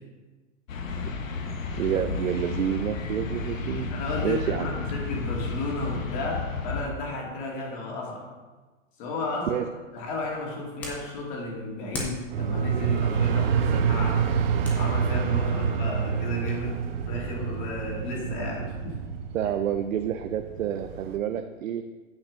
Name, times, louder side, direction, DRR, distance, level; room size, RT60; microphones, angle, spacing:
sound 1, 0.7-6.8, left 4 dB, 85° left, 1.3 m, -32 dB
voice 1, 1.8-3.9 4.2-4.7 9.5-9.7 19.3-21.8, right 10 dB, 80° right, 7 dB, 0.7 m, -28 dB
voice 2, 3.9-8.3 9.0-9.7 9.9-14.3 14.8-18.9, left 2 dB, 35° left, -2 dB, 2.2 m, -33 dB
sound 2, 9.9-16.7, left 1 dB, 5° left, 0.4 m, -43 dB
sound 3, 12.3-21.2, right 6 dB, 50° right, 0.8 m, -27 dB
8.7 x 4.4 x 6.2 m, 1.3 s
hypercardioid pair, 150°, 39 cm